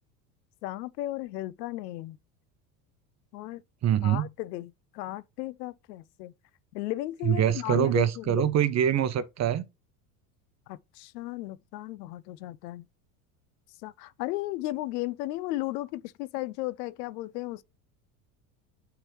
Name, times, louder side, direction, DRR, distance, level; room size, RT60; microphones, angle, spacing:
voice 1, 0.6-2.2 3.3-3.6 4.0-6.3 6.7-8.5 10.7-12.9 13.8-17.6, left 17 dB, 80° left, 0.6 m, -35 dB
voice 2, 3.8-4.3 7.2-9.6, right 10 dB, 35° right, 0.8 m, -24 dB
8.8 x 3.7 x 3.1 m
hypercardioid pair, 85°, 48 cm